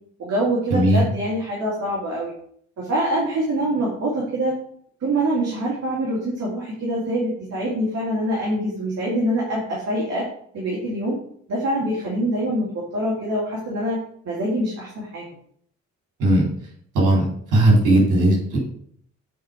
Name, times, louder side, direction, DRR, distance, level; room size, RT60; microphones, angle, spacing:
voice 1, 0.2-2.3 2.8-4.6 5.0-10.3 10.5-11.2 11.5-14.0 14.2-15.3, right 1 dB, 60° right, -5 dB, 2.6 m, -24 dB
voice 2, 0.7-1.0 16.2-16.5 16.9-17.3 17.5-18.6, right 1 dB, 85° right, -3 dB, 3.5 m, -17 dB
7.8 x 4.4 x 4.9 m, 0.63 s
cardioid pair, 90°, 30 cm